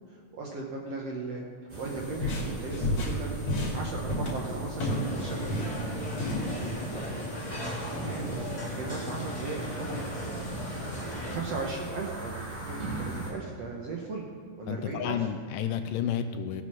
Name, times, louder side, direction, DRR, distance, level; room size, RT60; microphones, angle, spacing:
voice 1, 0.3-1.4 1.8-3.3 3.7-5.9 6.4-7.0 7.7-10.0 11.2-14.2 14.6-15.2, right 3 dB, 65° right, -1 dB, 1.7 m, -37 dB
sound 1, 1.7-13.3, right 2 dB, 30° right, 2.9 m, -39 dB
sound 2, 2.0-5.1 5.4-6.5, left 1 dB, 50° left, 3.2 m, -31 dB
sound 3, 4.8-11.4, left 1 dB, 10° left, 1.8 m, -37 dB
voice 2, 14.7-16.6, left 9 dB, 80° left, 8 dB, 2.1 m, -32 dB
18.0 x 6.4 x 5.9 m, 2.1 s
omnidirectional pair, 4.1 m